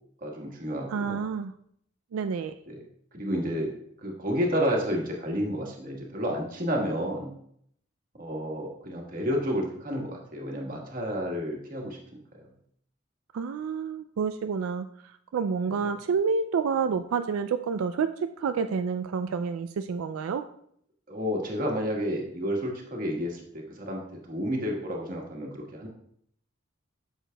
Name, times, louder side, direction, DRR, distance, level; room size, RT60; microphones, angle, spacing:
voice 1, 0.2-1.2 2.7-2.8 3.1-3.7 4.0-7.3 8.2-12.0 21.1-24.0 24.3-25.9, equal, 45° right, -1 dB, 1.5 m, -30 dB
voice 2, 0.9-1.5 2.1-2.5 13.3-14.9 15.3-20.4, right 5 dB, 90° right, 9 dB, 0.3 m, -28 dB
8.8 x 6.5 x 2.3 m, 0.68 s
head